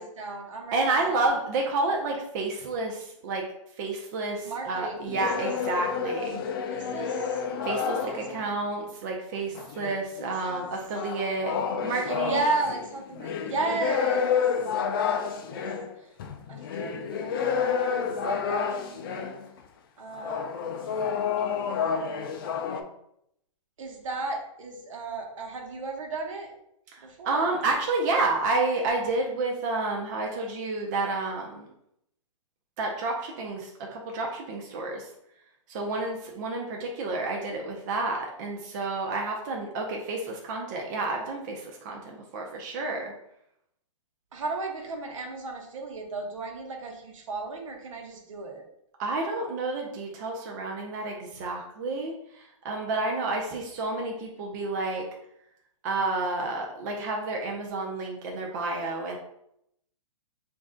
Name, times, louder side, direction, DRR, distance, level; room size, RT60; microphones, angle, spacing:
voice 1, 0.0-1.3 4.4-5.5 6.7-7.4 7.9-8.3 10.2-10.7 12.1-14.4 15.2-15.7 16.0-16.1 16.5-17.4 17.9-19.3 20.0-22.1 23.8-26.5 27.0-27.7 44.3-48.7, right 3 dB, 65° right, 2 dB, 0.9 m, -35 dB
voice 2, 0.7-3.4 3.8-6.4 7.6-12.4 26.9-31.7 32.8-35.1 35.7-43.1 49.0-55.1 55.8-59.2, right 3 dB, 35° right, 0 dB, 0.5 m, -30 dB
sound 1, 5.1-8.6 9.6-19.5 20.1-22.8, left 6 dB, 40° left, 0.4 m, -30 dB
3.1 x 2.6 x 3.7 m, 0.76 s
hypercardioid pair, 155°, 17 cm